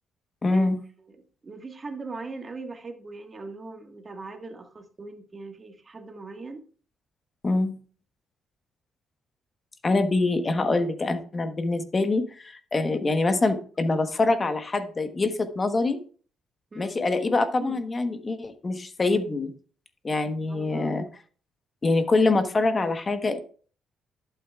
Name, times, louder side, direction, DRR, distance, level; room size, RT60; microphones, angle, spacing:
voice 1, 0.4-0.8 7.4-7.7 9.8-16.0 16.8-19.5 20.0-21.0 21.8-23.4, left 3 dB, 30° left, 9 dB, 1.1 m, -25 dB
voice 2, 1.4-6.6 16.7-17.0 17.6-17.8 20.5-21.0, right 3 dB, 30° right, 5 dB, 1.5 m, -40 dB
11.5 x 8.2 x 2.4 m, 0.42 s
cardioid pair, 90°, 0 cm